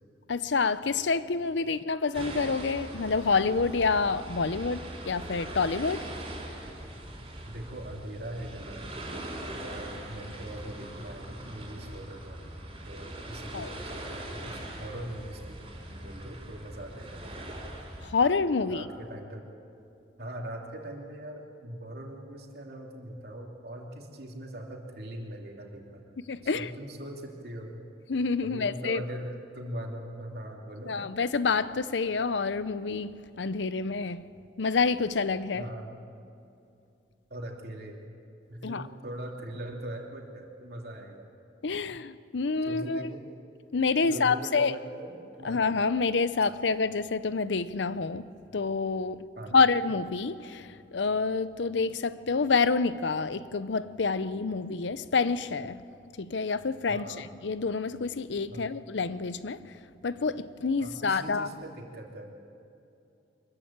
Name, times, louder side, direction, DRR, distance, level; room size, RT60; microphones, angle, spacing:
voice 1, 0.3-6.0 13.5-13.8 18.0-18.8 26.3-26.7 28.1-29.0 30.8-34.2 34.6-35.7 38.6-38.9 41.6-43.1 43.7-44.7 45.4-49.2 49.5-55.8 56.2-59.6 60.0-61.5, left 4 dB, 75° left, 0.7 m, -28 dB
sound 1, 2.1-18.1, right 1 dB, 30° right, 4.6 m, -41 dB
voice 2, 7.5-8.9 9.6-12.4 12.9-15.6 15.9-17.4 18.7-19.4 20.2-26.0 26.4-27.8 28.4-30.9 35.5-36.0 37.3-38.1 38.5-41.3 42.6-43.2 44.0-45.6 49.4-49.6 56.9-57.2 58.5-58.7 60.8-62.3, right 1 dB, 55° right, 3.0 m, -41 dB
24.5 x 14.5 x 8.8 m
head